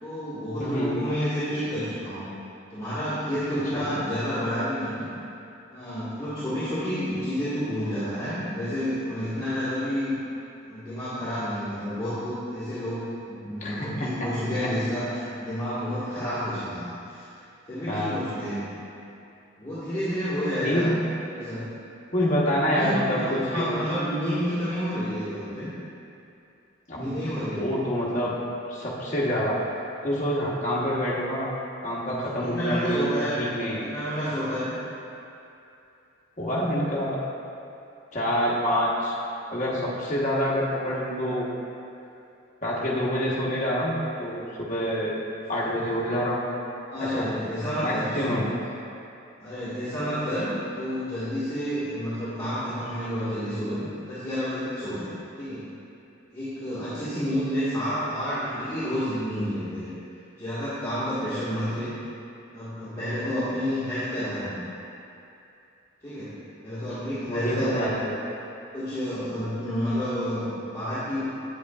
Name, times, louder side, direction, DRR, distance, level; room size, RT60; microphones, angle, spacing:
voice 1, 0.0-2.3 2.7-5.1 5.7-10.2 10.6-17.3 17.7-18.6 19.6-20.9 21.3-21.7 22.6-25.7 26.9-27.7 32.3-33.4 33.8-34.8 46.9-48.4 49.4-55.1 55.3-55.7 56.3-59.9 60.4-62.0 62.5-64.6 66.0-66.4 66.6-67.9 68.7-71.3, equal, 15° left, -15 dB, 1.6 m, -30 dB
voice 2, 0.6-0.9 3.7-3.8 13.6-14.3 17.9-18.2 20.6-21.1 22.1-23.7 26.9-27.2 27.6-28.4 28.7-29.6 30.0-31.5 31.8-33.1 33.4-33.8 36.4-37.2 38.1-39.2 39.5-41.4 42.6-46.4 47.0-47.3 47.8-48.4 67.3-68.2, equal, 35° left, -5 dB, 1.1 m, -27 dB
8.4 x 8.0 x 2.4 m, 2.7 s
head